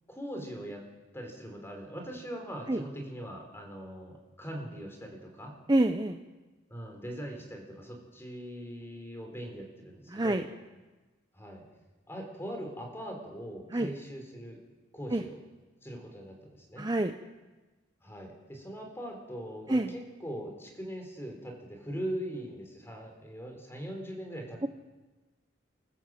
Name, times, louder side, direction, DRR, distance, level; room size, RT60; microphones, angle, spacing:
voice 1, 0.1-0.8 1.1-5.5 6.7-10.5 11.3-11.6 12.1-14.6 14.9-15.4 15.8-16.9 18.0-24.7, equal, 15° left, 3 dB, 4.1 m, -41 dB
voice 2, 5.7-6.2 10.1-10.4 13.7-13.9 15.1-15.2 16.8-17.1 19.7-19.9 24.6-24.7, right 1 dB, 20° right, 6 dB, 0.7 m, -27 dB
26.5 x 14.5 x 7.7 m, 1.2 s
head